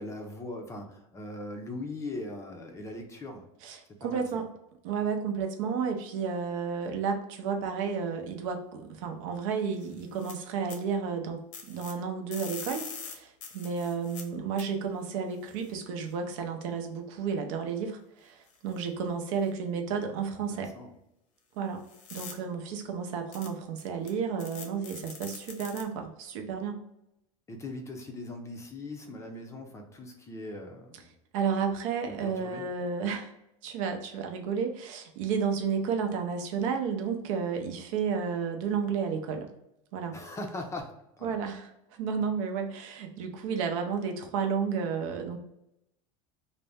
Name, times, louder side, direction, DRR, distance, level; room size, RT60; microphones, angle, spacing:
voice 1, 0.0-3.4 4.0-4.4 20.3-20.9 27.5-31.1 32.1-32.7 40.1-41.4, left 2 dB, 15° left, 3 dB, 0.4 m, -40 dB
voice 2, 3.6-4.5 4.8-20.7 21.6-21.8 22.1-26.8 31.3-33.3 33.6-39.5 39.9-40.2 41.2-45.4, right 6 dB, 75° right, 4 dB, 0.6 m, -32 dB
sound 1, 9.8-10.3 10.7-10.8 11.5-11.9 12.3-14.2 14.6-14.7 15.6-15.7 18.5-18.7 19.5-19.6 21.9-22.3 23.3-23.5 23.8-24.1 24.4-25.8, left 6 dB, 75° left, 0.8 m, -43 dB
2.5 x 2.1 x 3.2 m, 0.84 s
supercardioid pair, 130°, 17 cm